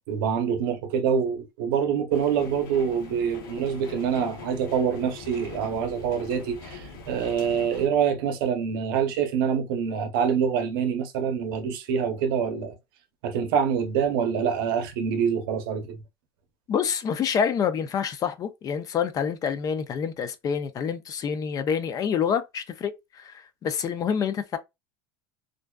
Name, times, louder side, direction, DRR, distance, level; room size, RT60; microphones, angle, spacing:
voice 1, 0.1-12.8 13.2-16.0, right 7 dB, 80° right, 0.6 m, -26 dB
sound 1, 2.1-7.9, left 5 dB, 85° left, 0.8 m, -42 dB
voice 2, 16.7-24.6, left 7 dB, 30° left, 0.4 m, -27 dB
2.5 x 2.2 x 2.2 m
supercardioid pair, 130°, 12 cm